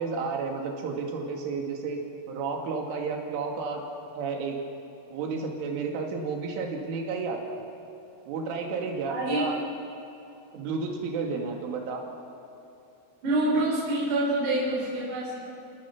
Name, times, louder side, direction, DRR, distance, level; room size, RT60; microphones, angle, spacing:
voice 1, 0.0-2.0 2.3-3.8 4.2-4.6 5.1-7.6 8.3-9.6 10.5-12.0, right 4 dB, 75° right, 1 dB, 4.8 m, -31 dB
voice 2, 9.1-9.5 13.2-15.4, right 1 dB, 55° right, -6 dB, 6.5 m, -26 dB
29.5 x 18.5 x 6.1 m, 2.8 s
omnidirectional pair, 5.8 m